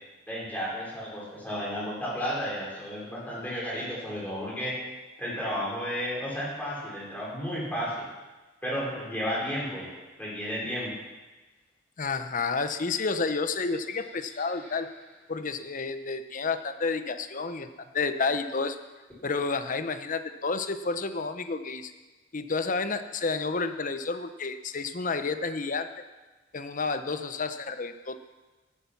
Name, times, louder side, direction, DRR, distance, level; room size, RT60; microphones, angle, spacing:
voice 1, 0.3-4.7 5.2-8.1 8.6-9.9 10.2-10.9 14.2-14.7, equal, 10° left, -7 dB, 5.0 m, -33 dB
voice 2, 12.0-14.9 15.3-17.7 17.9-18.8 19.2-21.9 22.3-25.9 26.5-28.2, left 4 dB, 45° left, 10 dB, 0.8 m, -30 dB
12.5 x 12.0 x 5.9 m, 1.2 s
head